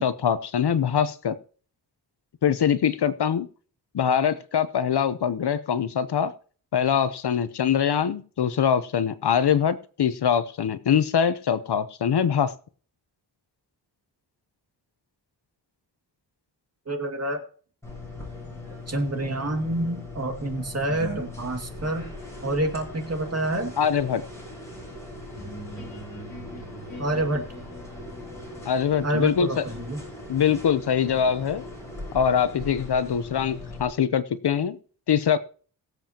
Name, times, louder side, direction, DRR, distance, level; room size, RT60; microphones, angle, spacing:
voice 1, 0.0-1.3 2.4-3.5 3.9-6.3 6.7-12.5 23.8-24.2 28.6-29.6 30.3-31.6 32.1-34.8 35.1-35.4, left 8 dB, 65° left, 13 dB, 0.9 m, -23 dB
voice 2, 16.9-17.4 18.9-22.1 22.4-23.7 27.0-27.5 29.0-30.0, right 1 dB, 35° right, 3 dB, 2.3 m, -27 dB
sound 1, 17.8-33.8, left 1 dB, 5° left, 7.6 m, -40 dB
sound 2, 25.3-31.0, equal, 40° left, 3.8 m, -44 dB
22.5 x 7.6 x 2.9 m, 0.42 s
wide cardioid pair, 120°, 42 cm